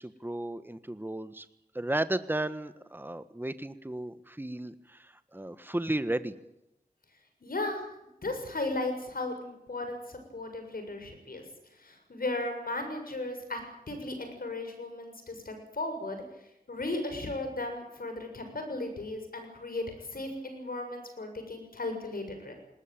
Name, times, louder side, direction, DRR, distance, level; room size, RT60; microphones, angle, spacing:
voice 1, 0.0-1.5 1.7-6.3, right 1 dB, 15° right, 13 dB, 1.4 m, -34 dB
voice 2, 7.4-7.9 8.2-11.4 11.7-13.6 13.9-22.6, left 2 dB, 70° left, 5 dB, 7.0 m, -36 dB
20.0 x 19.5 x 9.1 m, 0.85 s
cardioid pair, 45°, 16 cm